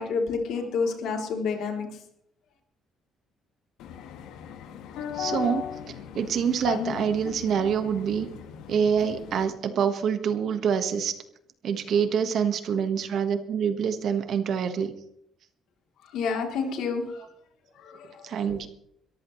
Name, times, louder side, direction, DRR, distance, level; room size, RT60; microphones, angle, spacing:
voice 1, 0.0-1.9 16.1-17.0 17.8-18.3, left 5 dB, 65° left, 3 dB, 3.2 m, -29 dB
sound 1, 3.8-9.5, left 9 dB, 90° left, 1.5 m, -37 dB
voice 2, 5.1-8.3 8.7-11.1 11.6-14.9 18.2-18.7, right 7 dB, 50° right, 9 dB, 1.5 m, -26 dB
22.5 x 14.5 x 3.2 m, 0.71 s
cardioid pair, 170°, 0 cm